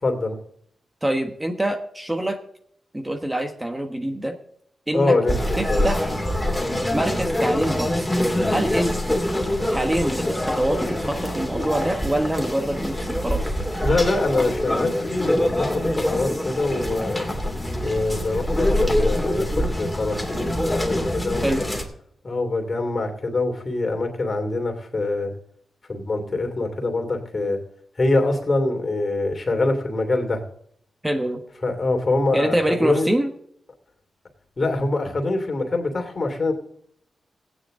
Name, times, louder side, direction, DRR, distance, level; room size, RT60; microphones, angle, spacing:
voice 1, 0.0-0.4 4.9-5.3 5.7-5.9 13.8-17.3 17.8-21.7 22.2-25.3 25.9-27.6 28.0-30.4 31.6-33.1 34.6-36.5, left 2 dB, 45° left, 3 dB, 2.9 m, -24 dB
voice 2, 1.0-2.4 2.9-4.3 4.9-5.1 5.6-6.1 6.9-8.1 8.5-9.2 9.7-13.5 21.4-21.6 31.0-31.4 32.3-33.3, right 1 dB, 15° right, 4 dB, 1.3 m, -25 dB
sound 1, 5.3-21.9, left 1 dB, 5° left, 2.6 m, -25 dB
15.5 x 9.6 x 3.8 m, 0.68 s
cardioid pair, 70°, 0 cm